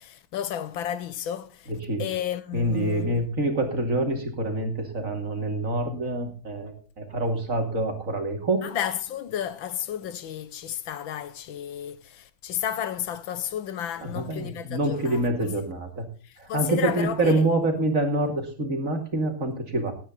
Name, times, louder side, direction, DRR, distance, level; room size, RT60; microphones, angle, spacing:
voice 1, 0.0-1.7 2.0-3.2 8.6-15.6 16.2-17.4, left 10 dB, 75° left, 1.6 m, -32 dB
voice 2, 2.5-8.7 14.0-16.0 16.4-19.9, right 2 dB, 40° right, 2.8 m, -26 dB
18.0 x 8.8 x 3.9 m
omnidirectional pair, 2.2 m